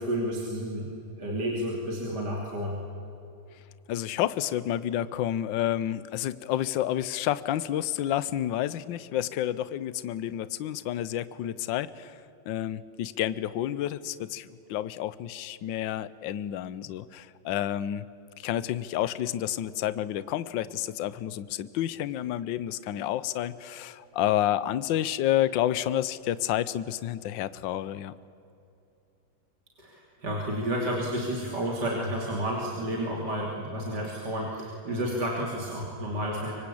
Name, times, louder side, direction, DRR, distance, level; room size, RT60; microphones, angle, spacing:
voice 1, 0.0-2.8 29.8-36.5, equal, 55° right, -2 dB, 3.5 m, -31 dB
voice 2, 3.9-12.1 12.5-28.1, left 12 dB, 70° left, 16 dB, 1.4 m, -30 dB
25.0 x 24.5 x 8.5 m, 2.7 s
omnidirectional pair, 2.2 m